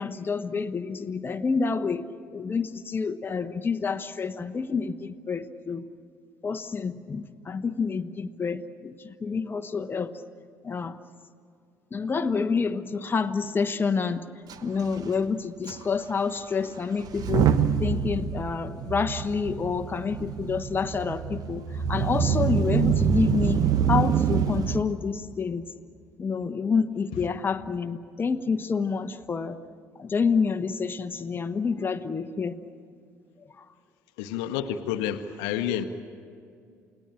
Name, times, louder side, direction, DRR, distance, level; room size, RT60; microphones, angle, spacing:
voice 1, 0.0-2.0 2.3-5.8 6.4-10.1 10.6-11.0 11.9-14.2 14.6-17.5 17.8-23.6 23.9-25.6 26.2-29.6 30.0-32.6, left 5 dB, 25° left, 8 dB, 1.1 m, -28 dB
Motor vehicle (road) / Engine starting / Accelerating revving vroom, 14.5-14.6 14.8-15.0 15.7-15.8 17.0-24.8, right 8 dB, 50° right, 1.1 m, -25 dB
voice 2, 34.2-35.8, left 10 dB, 65° left, 9 dB, 1.1 m, -29 dB
29.0 x 18.5 x 8.8 m, 2.4 s
figure-of-eight pair, 50°, 9 cm